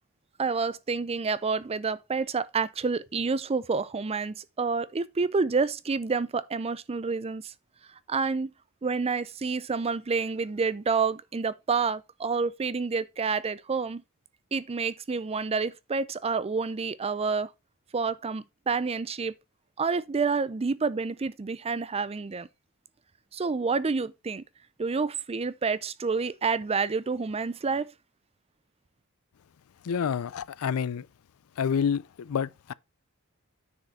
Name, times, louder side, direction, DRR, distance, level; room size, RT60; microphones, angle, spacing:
voice 1, 0.4-7.5 8.1-8.5 8.8-14.0 14.5-17.5 17.9-19.3 19.8-22.5 23.3-24.4 24.8-27.9, right 4 dB, 25° right, 0.5 m, -28 dB
voice 2, 29.8-31.1 31.6-32.7, left 7 dB, 70° left, 0.4 m, -28 dB
9.7 x 4.6 x 4.0 m
head